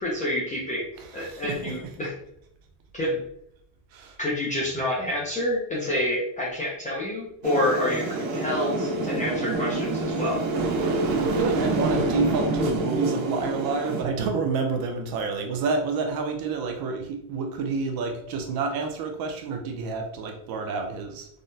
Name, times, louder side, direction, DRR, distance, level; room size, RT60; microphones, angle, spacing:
voice 1, 0.0-0.9 1.1-2.1 2.9-3.2 4.2-10.4, left 1 dB, 15° left, -5 dB, 0.4 m, -28 dB
voice 2, 1.0-1.9 3.9-4.2 10.9-21.3, right 4 dB, 45° right, 3 dB, 0.5 m, -29 dB
sound 1, 7.4-14.0, right 2 dB, 80° right, 0.8 m, -26 dB
3.6 x 2.1 x 2.6 m, 0.72 s
cardioid pair, 150°, 50 cm